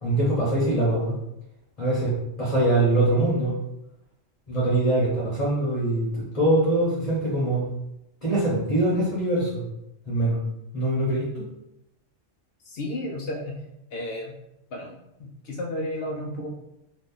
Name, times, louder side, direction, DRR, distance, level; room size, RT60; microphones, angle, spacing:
voice 1, 0.0-1.1 1.8-3.6 4.5-6.1 6.3-7.7 8.2-9.6 10.1-10.4 10.7-11.4, right 1 dB, 35° left, -7 dB, 0.9 m, -23 dB
voice 2, 12.7-13.5 13.9-14.3 14.7-16.5, left 1 dB, 65° left, 1 dB, 0.7 m, -32 dB
2.9 x 2.4 x 3.8 m, 0.85 s
omnidirectional pair, 1.3 m